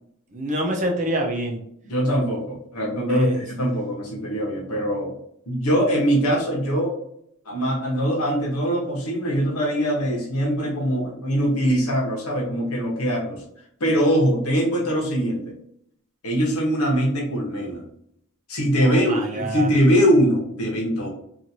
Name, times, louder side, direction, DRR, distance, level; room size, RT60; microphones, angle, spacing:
voice 1, 0.3-1.6 3.1-3.4 18.8-19.7, right 1 dB, 35° right, 0 dB, 0.6 m, -26 dB
voice 2, 1.8-5.1 5.5-6.9 7.5-13.4 13.8-15.5 16.2-17.8 18.5-21.1, equal, 90° left, -1 dB, 1.1 m, -22 dB
2.9 x 2.5 x 2.6 m, 0.71 s
head